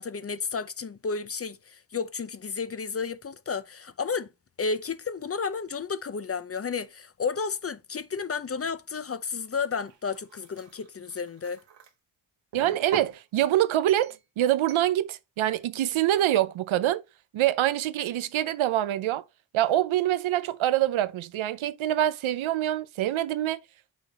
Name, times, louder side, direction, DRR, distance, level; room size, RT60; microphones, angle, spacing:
voice 1, 0.0-4.3 4.6-11.6, left 5 dB, 30° left, 0.6 m, -32 dB
sound 1, 9.6-11.9 12.5-13.2 13.9-14.2 14.7-14.9, right 8 dB, 70° right, 1.6 m, -42 dB
voice 2, 12.5-17.0 17.3-19.2 19.5-23.6, right 13 dB, 85° right, 0.7 m, -25 dB
6.2 x 4.0 x 4.1 m
cardioid pair, 100°, 46 cm